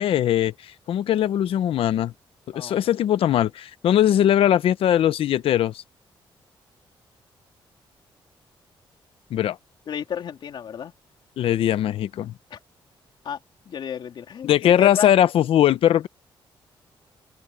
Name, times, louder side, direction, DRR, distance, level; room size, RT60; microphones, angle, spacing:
voice 1, 0.0-2.1 2.5-5.8 9.3-9.6 11.4-12.3 14.4-16.1, left 11 dB, 80° left, 0.9 m, -20 dB
voice 2, 2.5-2.8 9.9-10.9 12.5-12.6 13.2-13.4 13.6-15.1, left 8 dB, 60° left, 3.3 m, -32 dB
open air
wide cardioid pair, 150°, 9 cm